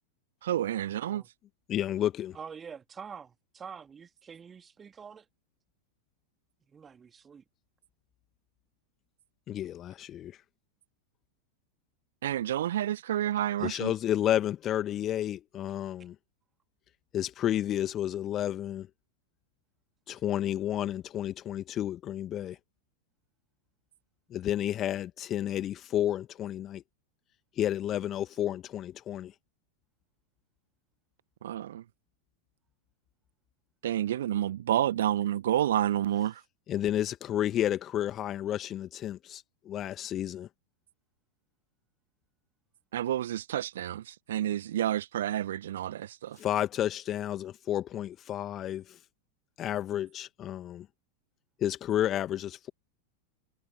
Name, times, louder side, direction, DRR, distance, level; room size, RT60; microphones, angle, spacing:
voice 1, 0.4-1.2 12.2-13.9 31.4-31.8 33.8-36.4 42.9-46.4, right 12 dB, 60° right, 1.6 m, -29 dB
voice 2, 1.7-2.3 9.5-10.3 13.6-16.1 17.1-18.9 20.1-22.6 24.3-26.8 27.6-29.3 36.7-40.5 46.4-48.8 49.6-50.9 51.6-52.7, left 11 dB, 30° left, 2.1 m, -31 dB
voice 3, 2.3-5.2 6.7-7.4, right 6 dB, 20° right, 3.4 m, -46 dB
figure-of-eight pair, 90°, 0 cm